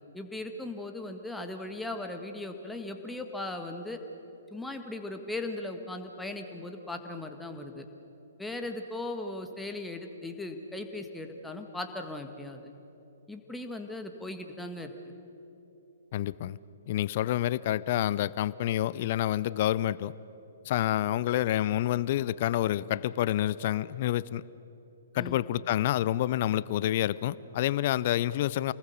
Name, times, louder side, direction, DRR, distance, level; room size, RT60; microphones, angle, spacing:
voice 1, 0.1-4.0 4.5-7.9 8.4-12.7 13.3-14.9 25.2-25.4, left 2 dB, 5° left, 5 dB, 1.7 m, -38 dB
voice 2, 16.1-16.6 16.9-20.1 20.6-24.4 25.1-28.7, left 13 dB, 40° left, 20 dB, 0.5 m, -28 dB
28.0 x 20.0 x 7.0 m, 3.0 s
figure-of-eight pair, 120°, 0 cm